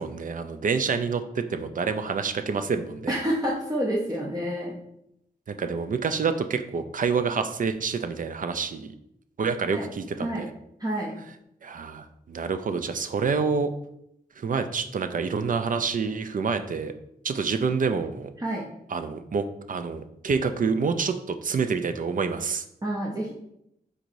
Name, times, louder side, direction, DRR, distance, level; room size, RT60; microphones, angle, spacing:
voice 1, 0.0-3.2 5.5-8.9 9.4-10.5 11.6-13.7 14.4-16.9 17.2-18.3 18.9-22.6, right 5 dB, 55° right, 9 dB, 0.4 m, -27 dB
voice 2, 3.1-4.7 9.7-9.9 10.2-10.5 10.8-11.1 18.4-18.6 22.8-23.3, equal, 25° right, -3 dB, 0.7 m, -28 dB
4.6 x 4.0 x 2.6 m, 0.78 s
wide cardioid pair, 90°, 16 cm